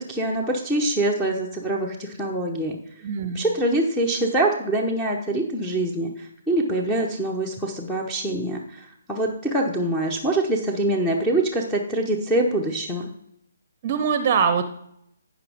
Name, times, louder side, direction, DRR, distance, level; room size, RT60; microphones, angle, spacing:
voice 1, 0.0-2.8 3.3-13.1, right 1 dB, 5° left, -1 dB, 1.1 m, -24 dB
voice 2, 3.0-3.4 13.8-14.6, right 6 dB, 35° right, 10 dB, 0.8 m, -22 dB
16.0 x 5.3 x 3.6 m, 0.73 s
figure-of-eight pair, 135°, 0 cm